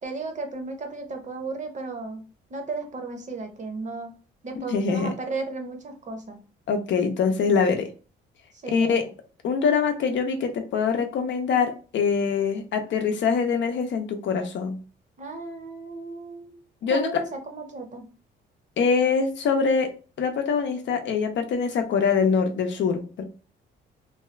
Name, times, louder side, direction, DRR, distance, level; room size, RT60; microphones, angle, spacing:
voice 1, 0.0-4.1 4.4-6.4 8.6-9.1 15.2-16.6 16.9-18.1, right 3 dB, 40° right, 5 dB, 0.8 m, -35 dB
voice 2, 4.6-5.1 6.7-7.9 8.7-9.0 9.4-14.8 16.8-17.2 18.8-19.9 20.2-23.2, left 5 dB, 65° left, 6 dB, 0.6 m, -24 dB
2.7 x 2.3 x 3.2 m, 0.37 s
cardioid pair, 90°, 20 cm